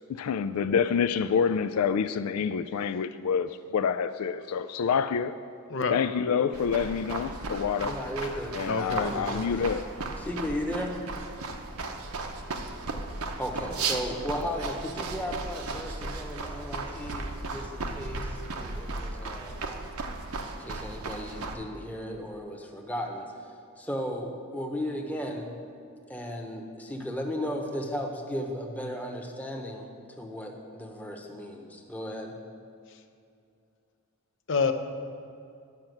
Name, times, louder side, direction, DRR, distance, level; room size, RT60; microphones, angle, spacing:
voice 1, 0.1-5.3 5.9-9.9, left 6 dB, 90° left, 0.4 m, -27 dB
sound 1, 6.5-21.6, right 3 dB, 80° right, 0.8 m, -35 dB
voice 2, 7.8-8.6 9.1-9.7 10.2-11.0 13.4-19.6 20.6-25.5 26.1-29.9 30.2-32.4, equal, 5° left, 0.9 m, -35 dB
voice 3, 8.7-9.1 34.5-34.7, left 4 dB, 60° left, 0.7 m, -26 dB
11.0 x 5.8 x 7.8 m
head